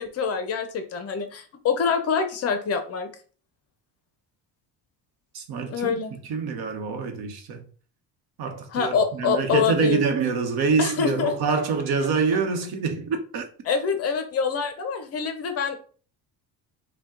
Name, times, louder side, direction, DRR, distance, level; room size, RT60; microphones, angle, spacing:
voice 1, 0.0-3.1 5.7-6.2 8.7-10.0 10.8-11.3 13.6-15.8, left 6 dB, 35° left, 0.5 m, -25 dB
voice 2, 5.3-7.7 8.4-13.4, right 5 dB, 60° right, 1.0 m, -26 dB
5.4 x 2.2 x 3.6 m
cardioid pair, 175°, 43 cm